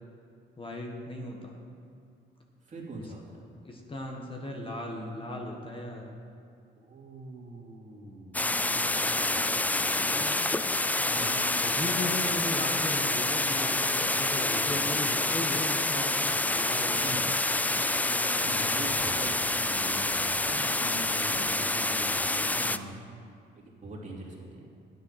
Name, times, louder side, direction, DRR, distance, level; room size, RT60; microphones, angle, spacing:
voice 1, 0.6-1.6 3.6-6.1 8.4-9.2 11.0-16.1 16.5-17.2 18.0-18.7 22.5-23.0, left 1 dB, 25° left, 1 dB, 1.4 m, -37 dB
voice 2, 2.6-3.4 6.8-8.6 9.2-10.5 14.5-15.0 16.9-17.3 18.4-22.9 23.5-24.7, right 2 dB, 40° right, -3 dB, 2.8 m, -43 dB
sound 1, 8.3-22.8, left 2 dB, 10° left, 0.3 m, -27 dB
10.5 x 9.7 x 5.8 m, 2.4 s
cardioid pair, 90°, 20 cm